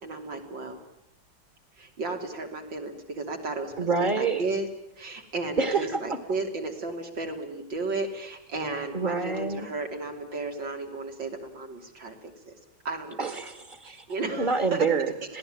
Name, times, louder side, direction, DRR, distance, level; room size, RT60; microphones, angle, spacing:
voice 1, 0.0-0.8 1.8-4.7 5.0-12.5 12.9-13.3 13.8-14.8, right 3 dB, 80° right, 3 dB, 3.8 m, -34 dB
voice 2, 3.8-4.5 5.6-6.2 8.9-9.7 13.2-14.1 14.4-15.4, right 4 dB, 25° right, 8 dB, 1.8 m, -27 dB
26.0 x 18.0 x 9.0 m, 0.86 s
omnidirectional pair, 2.0 m